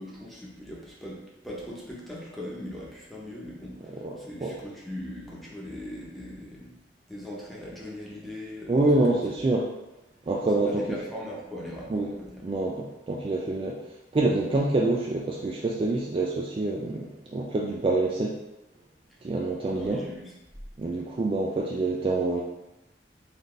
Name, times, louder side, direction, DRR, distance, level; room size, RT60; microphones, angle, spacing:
voice 1, 0.0-6.7 7.1-9.2 10.6-12.4 19.7-20.2, left 1 dB, ahead, -6 dB, 0.9 m, -40 dB
voice 2, 3.9-4.6 8.7-9.7 10.3-10.8 11.9-12.1 12.4-13.8 14.1-18.4 19.2-20.0 20.8-22.4, right 2 dB, 30° right, -2 dB, 0.3 m, -26 dB
4.1 x 2.7 x 3.2 m, 0.94 s
head